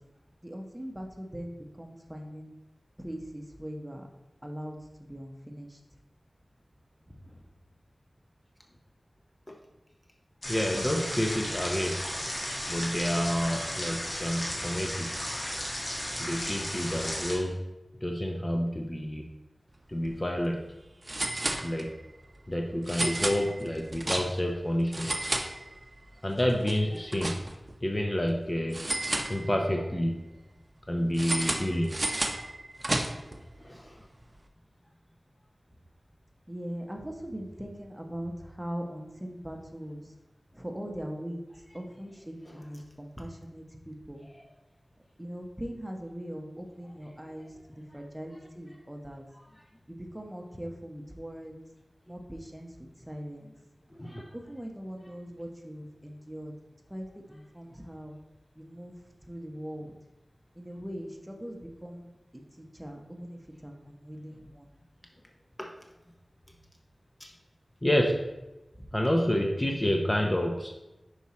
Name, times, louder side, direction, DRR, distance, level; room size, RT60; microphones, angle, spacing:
voice 1, 0.4-2.5 3.0-4.1 4.4-5.8 7.3-7.4 36.5-40.0 40.5-41.4 41.7-44.3 45.2-49.2 49.9-51.5 52.1-52.7 53.0-53.5 54.3-56.5 56.9-58.1 58.6-58.9 59.3-59.9 60.6-62.1 62.6-64.7, equal, 10° right, 2 dB, 0.9 m, -41 dB
sound 1, 10.4-17.4, equal, 50° left, 1.7 m, -34 dB
voice 2, 10.5-12.0 12.7-15.1 16.2-17.6 18.0-19.2 19.9-20.6 21.6-22.0 22.5-25.2 26.2-27.4 27.8-28.8 29.3-30.2 30.9-31.9 33.6-34.0 42.5-42.6 44.3-44.5 53.9-54.3 65.6-65.7 67.2-67.3 67.8-68.2 68.9-70.7, equal, 25° left, 2 dB, 0.6 m, -29 dB
sound 2, 19.9-20.1 20.4-20.5 21.0-22.1 22.8-24.6 24.9-26.0 26.4-27.8 28.7-29.8 31.1-33.4, right 1 dB, 35° right, 0.7 m, -32 dB
5.5 x 4.8 x 4.2 m, 0.99 s
wide cardioid pair, 70°, 0 cm